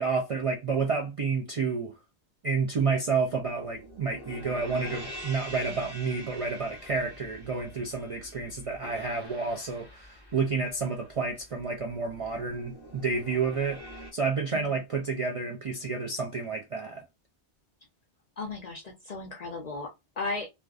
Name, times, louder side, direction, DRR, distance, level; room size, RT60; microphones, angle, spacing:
voice 1, 0.0-1.9 2.4-13.8 14.1-17.0, right 4 dB, 60° right, 0.3 m, -30 dB
sound 1, 3.3-14.1, equal, 25° right, 0.8 m, -45 dB
voice 2, 18.4-20.5, left 3 dB, 60° left, 0.4 m, -36 dB
2.4 x 2.2 x 2.3 m
omnidirectional pair, 1.1 m